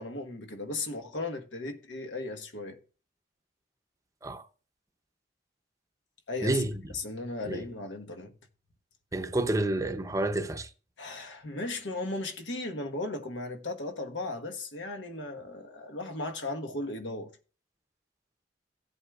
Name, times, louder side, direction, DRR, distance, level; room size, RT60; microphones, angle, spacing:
voice 1, 0.0-2.8 6.3-6.6 6.9-8.3 11.0-17.3, left 2 dB, 90° left, 1.3 m, -36 dB
voice 2, 6.4-6.7 7.5-7.6 9.1-10.7, right 2 dB, 20° right, 0.6 m, -29 dB
16.0 x 8.1 x 2.4 m
head